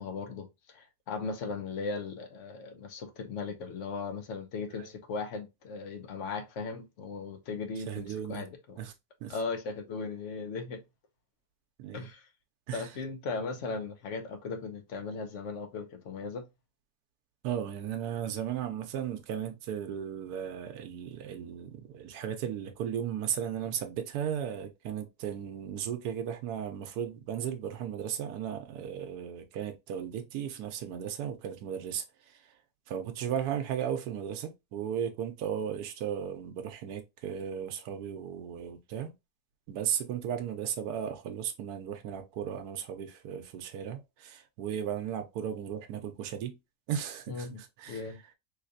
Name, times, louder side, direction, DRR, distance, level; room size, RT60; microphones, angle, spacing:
voice 1, 0.0-8.8 9.3-10.8 11.9-12.3 12.7-16.4 47.3-47.6 47.9-48.2, left 4 dB, 60° left, 1.0 m, -37 dB
voice 2, 7.8-8.5 8.8-8.9 9.2-9.4 11.8-12.1 12.7-12.9 17.4-32.6 32.9-39.1 39.7-46.6 46.9-48.1, right 9 dB, 85° right, 1.1 m, -36 dB
3.3 x 3.2 x 2.5 m
omnidirectional pair, 1.7 m